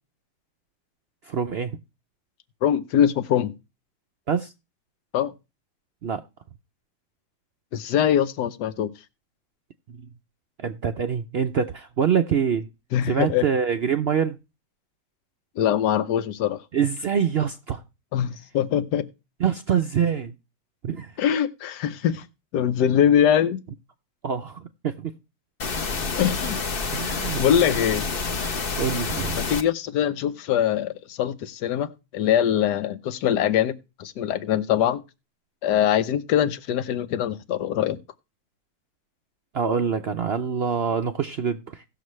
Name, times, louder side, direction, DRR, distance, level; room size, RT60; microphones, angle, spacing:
voice 1, 1.2-1.8 4.3-4.5 6.0-6.2 9.9-10.1 10.6-12.7 13.1-14.4 16.7-17.8 19.4-20.3 20.8-21.1 24.2-25.1 26.9-27.4 28.8-29.4 39.5-41.8, right 7 dB, 60° right, 0.6 m, -25 dB
voice 2, 2.6-3.5 5.1-5.3 7.7-8.9 12.9-13.4 15.6-16.6 18.1-19.1 21.2-22.2 22.5-23.6 26.2-26.6 27.4-28.0 29.4-35.0 35.6-38.0, left 9 dB, 80° left, 1.4 m, -23 dB
sound 1, 25.6-29.6, left 4 dB, 40° left, 0.9 m, -28 dB
17.5 x 6.7 x 3.1 m
omnidirectional pair, 1.8 m